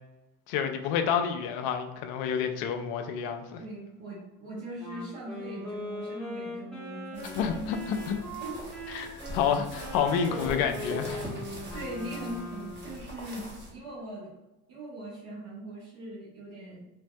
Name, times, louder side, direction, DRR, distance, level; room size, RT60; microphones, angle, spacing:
voice 1, 0.5-3.6 7.3-8.2 8.9-11.2, left 7 dB, 55° left, 6 dB, 0.5 m, -29 dB
voice 2, 3.6-7.5 8.4-8.9 11.7-14.3 14.7-16.8, right 1 dB, 50° right, -7 dB, 1.2 m, -41 dB
Wind instrument woodwind instrument, 4.8-13.1, left 1 dB, ahead, 0.9 m, -40 dB
sound 1, 7.1-13.7, equal, 25° right, 1.1 m, -42 dB
3.2 x 2.4 x 2.2 m, 0.99 s
figure-of-eight pair, 55°, 44 cm